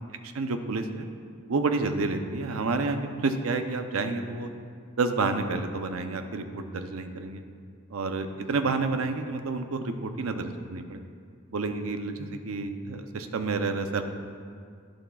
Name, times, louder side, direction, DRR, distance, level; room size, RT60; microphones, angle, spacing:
voice 1, 0.2-1.1 1.5-4.5 5.0-7.4 7.9-11.0 11.5-14.0, right 3 dB, 85° right, 7 dB, 0.6 m, -29 dB
11.0 x 10.5 x 2.3 m, 2.2 s
head